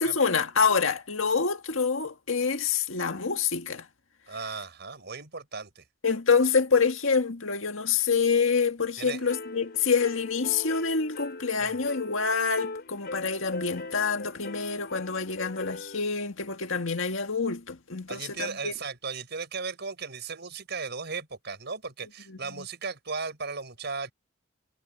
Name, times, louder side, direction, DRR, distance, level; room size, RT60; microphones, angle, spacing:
voice 1, 0.0-3.9 6.0-18.7 22.6-22.7, left 5 dB, 75° left, 1.9 m, -26 dB
voice 2, 4.3-5.8 9.0-9.2 11.6-11.8 18.1-24.1, right 4 dB, 55° right, 5.9 m, -36 dB
sound 1, 9.0-16.0, left 3 dB, 55° left, 3.9 m, -41 dB
head